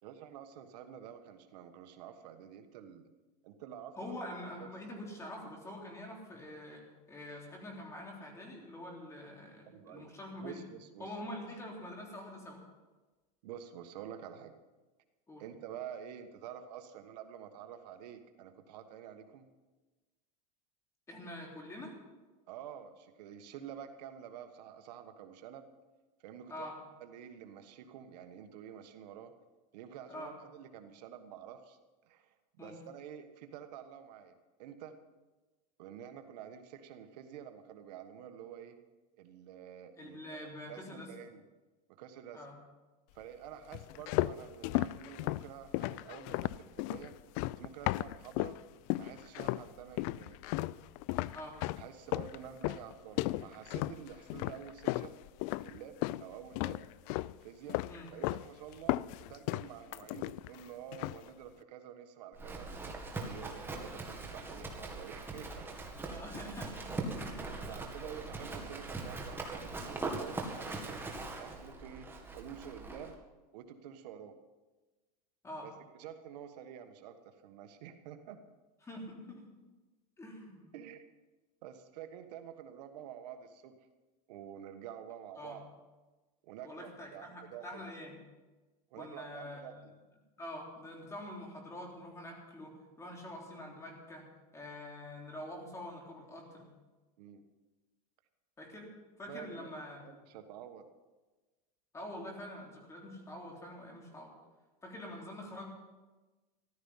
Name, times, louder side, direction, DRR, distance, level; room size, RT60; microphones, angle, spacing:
voice 1, 0.0-3.1 3.4-4.2 4.6-4.7 9.7-10.1 10.4-11.1 13.4-14.5 15.4-19.5 22.5-25.7 26.2-26.7 27.0-29.3 29.7-34.3 34.6-34.9 35.8-38.8 39.2-41.4 41.9-42.5 43.1-47.1 47.6-48.6 49.0-50.4 51.8-55.2 55.6-56.8 57.4-57.8 58.1-62.7 63.2-65.7 67.1-67.3 67.7-70.9 71.3-72.1 72.3-73.2 73.5-74.4 75.6-75.7 76.0-78.4 80.7-81.0 81.6-83.9 84.3-85.6 86.4-87.8 88.9-89.9 97.2-97.4 99.3-99.7 100.0-100.9, right 9 dB, 75° right, 8 dB, 1.4 m, -49 dB
voice 2, 4.0-10.7 11.0-12.6 15.3-15.4 21.1-21.9 26.5-26.8 30.1-30.3 32.6-32.8 39.9-41.1 42.3-42.5 51.3-51.6 57.9-58.1 66.1-66.9 67.2-67.5 75.4-75.7 78.8-79.5 80.2-80.7 85.4-85.6 86.6-88.2 88.9-89.8 90.4-94.3 94.5-96.7 98.6-98.9 99.2-100.0 101.9-104.3 104.8-105.7, left 1 dB, 15° left, 0 dB, 3.5 m, -45 dB
sound 1, 43.7-48.6 48.9-49.7 50.0-56.2 56.5-57.4 57.7-58.5 58.7-60.6 60.9-61.3, left 18 dB, 55° left, 0.4 m, -35 dB
Livestock farm animals working animals, 62.4-73.1, right 3 dB, 10° right, 1.9 m, -41 dB
14.0 x 13.0 x 5.6 m, 1.2 s
supercardioid pair, 140°, 21 cm